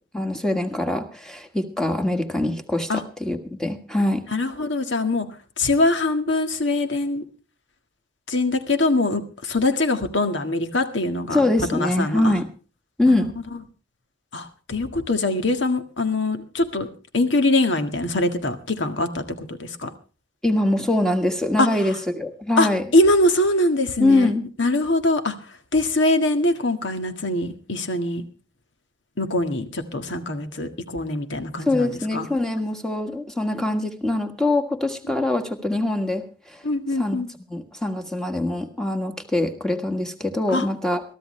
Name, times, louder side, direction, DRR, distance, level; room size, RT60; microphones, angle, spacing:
voice 1, 0.1-4.2 11.3-12.5 13.0-13.3 20.4-22.8 24.0-24.5 31.6-36.6 37.0-37.2 37.5-41.0, left 1 dB, 5° left, 6 dB, 1.6 m, -23 dB
voice 2, 4.3-5.3 5.6-7.2 8.3-11.4 11.7-12.3 13.1-13.3 14.3-16.9 17.1-19.9 21.6-21.7 22.6-25.3 25.7-28.2 29.2-32.3 36.6-37.3 40.5-40.6, left 2 dB, 65° left, 7 dB, 1.8 m, -23 dB
22.0 x 13.5 x 3.3 m, 0.36 s
head